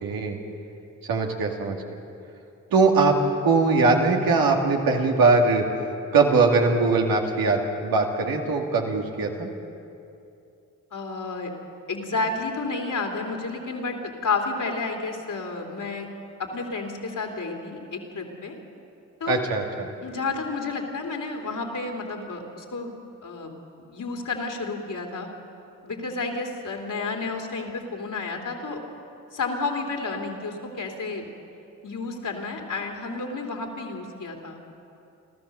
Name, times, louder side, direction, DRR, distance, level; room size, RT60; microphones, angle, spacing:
voice 1, 0.0-0.4 1.1-1.8 2.7-3.2 3.4-5.7 6.1-9.5 19.3-19.9, right 3 dB, 80° right, 1 dB, 2.2 m, -21 dB
voice 2, 10.9-11.5 11.9-16.1 16.4-18.5 19.2-19.4 20.0-22.9 23.2-23.5 23.9-25.3 25.8-28.8 29.3-31.3 31.8-34.6, left 3 dB, 60° left, 2 dB, 3.2 m, -31 dB
29.0 x 13.0 x 6.9 m, 2.7 s
supercardioid pair, 45°, 35 cm